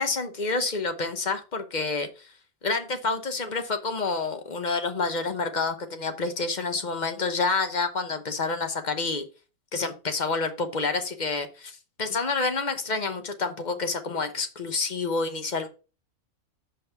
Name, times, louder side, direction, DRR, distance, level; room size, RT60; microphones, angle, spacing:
voice 1, 0.0-2.3 2.6-9.2 9.7-15.7, left 4 dB, 35° left, 8 dB, 0.9 m, -28 dB
5.6 x 5.4 x 5.8 m, 0.33 s
omnidirectional pair, 1.6 m